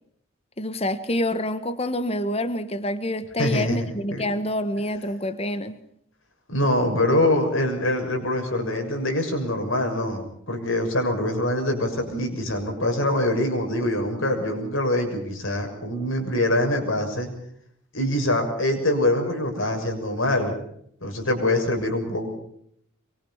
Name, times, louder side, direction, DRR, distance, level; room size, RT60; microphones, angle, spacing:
voice 1, 0.6-5.8, left 1 dB, 30° left, 12 dB, 1.3 m, -27 dB
voice 2, 3.4-4.2 6.5-17.3 17.9-20.5 21.0-22.3, left 1 dB, 70° left, 4 dB, 6.9 m, -24 dB
24.5 x 23.5 x 5.8 m, 0.69 s
head